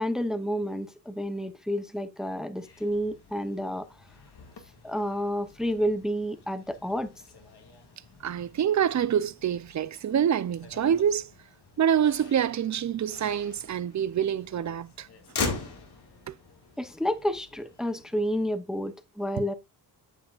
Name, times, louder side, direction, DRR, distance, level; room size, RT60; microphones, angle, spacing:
voice 1, 0.0-3.9 4.8-7.1 16.8-19.5, equal, ahead, 0.7 m, -30 dB
Motor vehicle (road), 2.5-18.4, left 4 dB, 65° left, 2.0 m, -42 dB
voice 2, 8.2-11.3 11.8-15.1 16.3-16.4, right 9 dB, 40° right, 0.5 m, -26 dB
8.9 x 7.5 x 2.4 m
cardioid pair, 100°, 43 cm